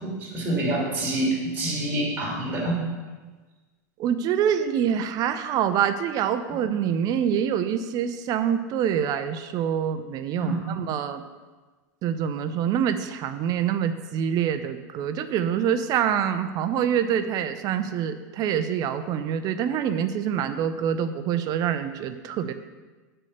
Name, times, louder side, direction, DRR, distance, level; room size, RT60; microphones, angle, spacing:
voice 1, 0.0-2.8 10.4-10.7, right 1 dB, 20° right, -3 dB, 2.8 m, -27 dB
voice 2, 4.0-11.2 12.0-22.5, right 8 dB, 40° right, 10 dB, 0.6 m, -26 dB
8.2 x 4.4 x 6.6 m, 1.3 s
hypercardioid pair, 115°, 10 cm